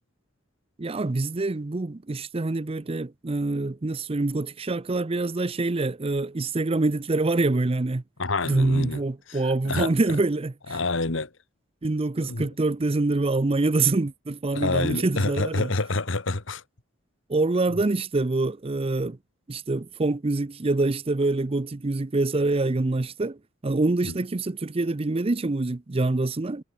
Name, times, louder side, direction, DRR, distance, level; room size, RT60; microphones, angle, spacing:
voice 1, 0.8-8.0 8.5-10.8 11.8-15.7 17.3-19.2 19.5-26.6, right 2 dB, 30° right, 0.6 m, -25 dB
voice 2, 8.2-9.0 9.3-9.4 9.7-9.9 10.7-11.3 12.2-12.5 14.6-16.6 24.1-24.2, left 3 dB, 75° left, 1.7 m, -27 dB
head